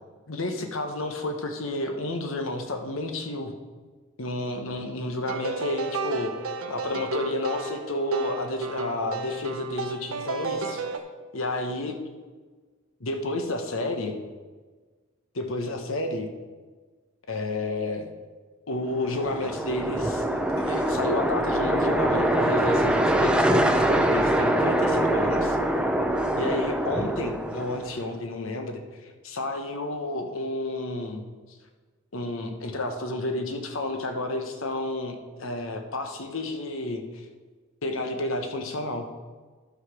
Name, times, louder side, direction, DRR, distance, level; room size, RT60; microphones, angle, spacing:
voice 1, 0.3-3.5 4.2-6.3 6.7-10.8 11.3-12.0 13.0-14.2 15.3-16.3 17.3-18.1 18.7-25.6 26.4-31.2 32.1-37.2 37.8-39.1, left 2 dB, 70° left, 5 dB, 1.1 m, -31 dB
sound 1, 5.3-11.0, right 4 dB, 80° right, 0.8 m, -32 dB
sound 2, 19.0-28.0, right 1 dB, 5° right, 0.5 m, -24 dB
11.5 x 6.1 x 4.8 m, 1.4 s
head